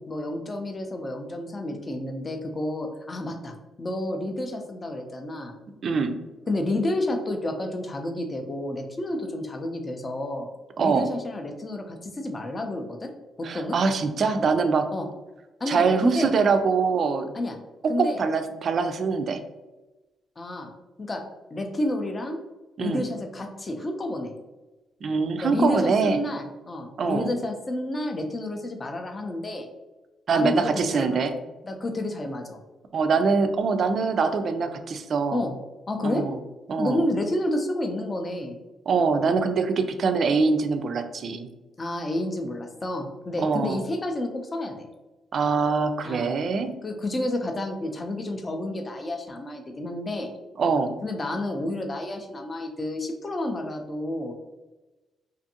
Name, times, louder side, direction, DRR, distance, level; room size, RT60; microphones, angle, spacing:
voice 1, 0.1-5.5 6.5-10.5 10.8-13.1 13.4-13.8 14.9-15.1 15.6-16.3 17.3-17.6 17.9-18.2 20.4-20.7 21.0-21.2 21.5-22.4 22.8-24.3 25.4-29.7 30.3-31.2 31.6-32.6 35.3-35.5 35.9-36.3 36.8-38.6 41.8-44.9 46.0-46.3 46.8-50.3 51.0-54.3, left 1 dB, 30° left, 4 dB, 0.4 m, -30 dB
voice 2, 5.8-6.2 10.8-11.1 13.4-14.9 15.7-17.3 17.8-19.4 22.8-23.1 25.0-26.2 27.0-27.3 30.3-31.3 32.9-35.4 36.0-36.4 36.7-37.0 38.9-41.5 43.4-43.8 45.3-46.7 50.6-50.9, right 4 dB, 55° right, 8 dB, 0.3 m, -23 dB
2.5 x 2.5 x 2.7 m, 1.1 s
cardioid pair, 90°, 0 cm